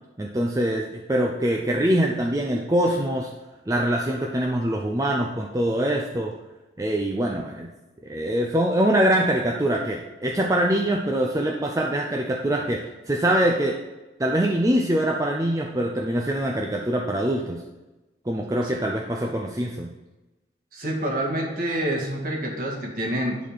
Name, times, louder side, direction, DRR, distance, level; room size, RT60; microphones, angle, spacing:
voice 1, 0.2-3.3 3.7-6.3 6.8-7.7 8.0-13.8 14.2-17.6 18.3-19.9, right 1 dB, 20° right, 1 dB, 0.5 m, -24 dB
voice 2, 20.7-23.4, right 1 dB, 50° right, -1 dB, 1.8 m, -27 dB
10.5 x 4.2 x 5.6 m, 1.1 s
head